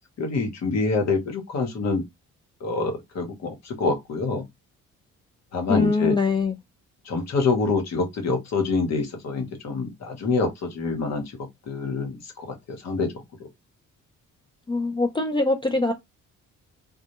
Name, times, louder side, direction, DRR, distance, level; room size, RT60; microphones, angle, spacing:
voice 1, 0.2-2.0 2.6-4.5 5.5-6.2 7.0-11.2 11.7-13.1, left 4 dB, 60° left, 0.9 m, -26 dB
voice 2, 5.7-6.6 14.7-15.9, left 3 dB, 15° left, 0.3 m, -23 dB
2.1 x 2.1 x 2.9 m
cardioid pair, 90°, 30 cm